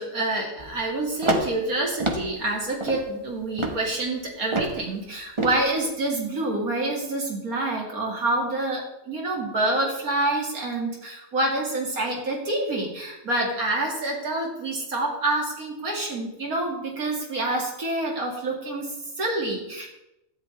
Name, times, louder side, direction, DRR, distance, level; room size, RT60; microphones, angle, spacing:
voice 1, 0.0-19.9, right 2 dB, 85° right, -1 dB, 2.7 m, -27 dB
sound 1, 0.6-0.8 1.2-1.6 2.0-2.3 2.8-3.0 3.6-3.8 4.5-4.8 5.4-5.6, right 2 dB, 25° right, 1.0 m, -26 dB
13.0 x 9.6 x 3.3 m, 0.89 s
omnidirectional pair, 1.5 m